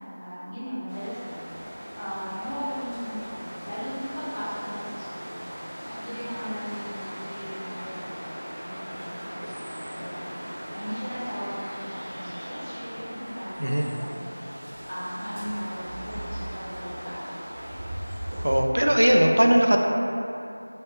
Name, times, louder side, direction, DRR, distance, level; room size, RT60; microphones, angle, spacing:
voice 1, 0.0-5.4 5.7-14.4 14.9-17.7, equal, 40° left, -12 dB, 1.2 m, -37 dB
sound 1, 0.9-18.6, equal, 30° right, 0.8 m, -38 dB
voice 2, 18.4-19.8, equal, 80° right, 2 dB, 0.3 m, -19 dB
3.1 x 2.4 x 3.4 m, 2.7 s
figure-of-eight pair, 175°, 0 cm